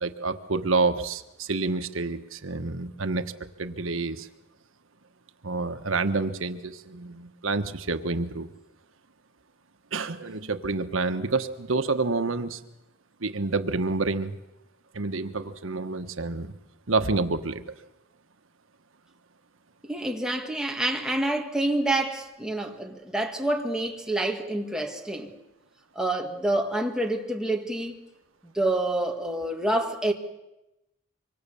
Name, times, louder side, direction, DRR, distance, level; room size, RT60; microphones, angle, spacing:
voice 1, 0.0-3.2 3.6-4.3 5.4-8.5 9.9-12.6 13.2-14.4 14.9-16.6 16.9-17.6, right 3 dB, 85° right, 1.3 m, -28 dB
voice 2, 19.8-25.3 26.0-28.0 28.6-30.1, right 1 dB, 5° right, 2.1 m, -27 dB
25.5 x 24.5 x 7.0 m
head